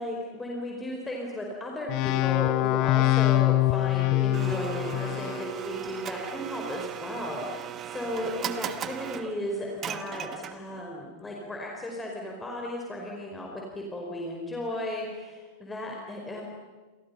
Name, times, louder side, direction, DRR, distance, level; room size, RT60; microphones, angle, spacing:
voice 1, 0.0-16.4, left 1 dB, 10° left, -1 dB, 5.0 m, -35 dB
sound 1, 1.9-5.5, left 17 dB, 40° left, 1.2 m, -24 dB
Domestic sounds home sounds, 4.3-10.8, right 10 dB, 30° right, 1.4 m, -37 dB
30.0 x 28.0 x 5.8 m, 1.3 s
figure-of-eight pair, 90°, 0 cm